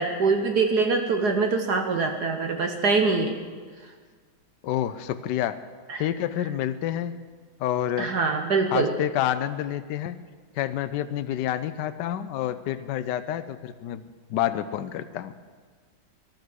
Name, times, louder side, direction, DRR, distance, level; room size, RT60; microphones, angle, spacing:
voice 1, 0.0-3.4 5.9-6.0 8.0-8.9, right 4 dB, 55° right, 5 dB, 1.4 m, -24 dB
voice 2, 4.6-5.6 6.0-7.1 7.6-8.1 8.7-10.2 10.5-14.0 14.3-15.3, left 11 dB, 70° left, 11 dB, 1.1 m, -28 dB
18.5 x 12.0 x 6.4 m, 1.5 s
omnidirectional pair, 2.3 m